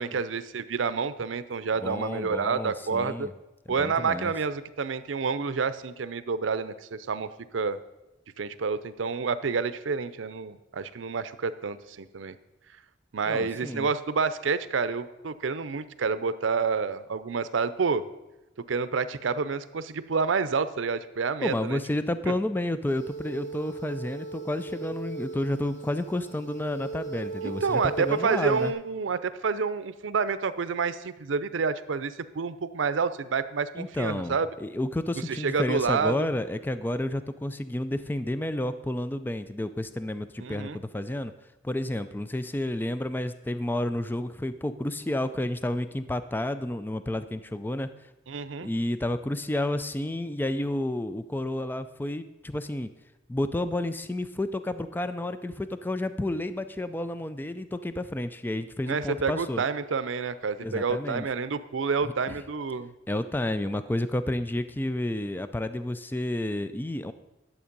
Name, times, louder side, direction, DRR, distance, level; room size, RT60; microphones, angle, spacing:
voice 1, 0.0-3.3 3.7-7.8 8.4-12.4 13.1-18.0 18.7-21.8 27.4-34.5 35.3-36.3 40.4-40.8 48.3-48.7 58.9-62.9, right 5 dB, 90° right, 14 dB, 0.5 m, -29 dB
voice 2, 1.8-3.3 3.8-4.3 13.3-13.9 21.4-28.7 33.8-41.3 41.6-47.9 48.6-52.9 53.3-59.6 60.6-61.3 63.1-67.1, left 1 dB, 10° left, 12 dB, 0.3 m, -31 dB
sound 1, 22.9-28.7, right 4 dB, 65° left, 1.6 m, -38 dB
11.5 x 7.2 x 5.2 m, 1.0 s
head